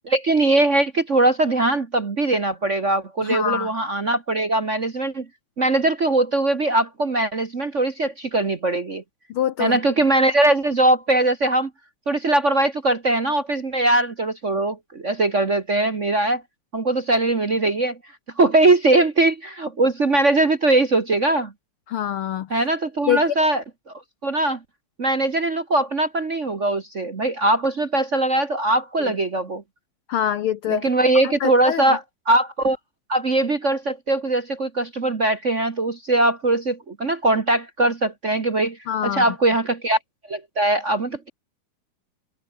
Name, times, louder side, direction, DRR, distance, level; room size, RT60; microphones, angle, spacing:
voice 1, 0.0-5.2 5.6-9.0 9.6-11.7 12.1-16.4 16.7-18.0 18.4-21.5 22.5-23.9 24.2-24.6 25.0-29.6 30.7-32.8 33.1-38.8 39.0-40.0 40.3-41.3, right 2 dB, 40° right, 1.0 m, -21 dB
voice 2, 3.2-3.7 9.3-9.8 21.9-22.5 23.1-23.2 29.0-29.1 30.1-30.9 31.2-32.0 38.9-39.3, left 10 dB, 80° left, 1.2 m, -25 dB
omnidirectional pair, 3.5 m